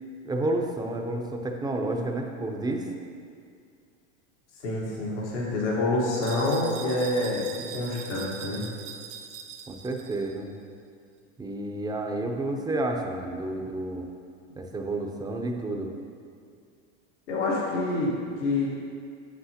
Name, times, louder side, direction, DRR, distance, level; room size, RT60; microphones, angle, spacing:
voice 1, 0.2-2.9 9.7-10.5 11.4-14.1 14.6-15.9, right 2 dB, 10° right, 2 dB, 0.6 m, -30 dB
voice 2, 4.6-8.7 17.3-18.7, left 2 dB, 85° left, -4 dB, 1.6 m, -27 dB
sound 1, 6.2-10.4, right 7 dB, 70° right, 1.2 m, -41 dB
8.1 x 7.4 x 2.9 m, 2.3 s
supercardioid pair, 115°, 34 cm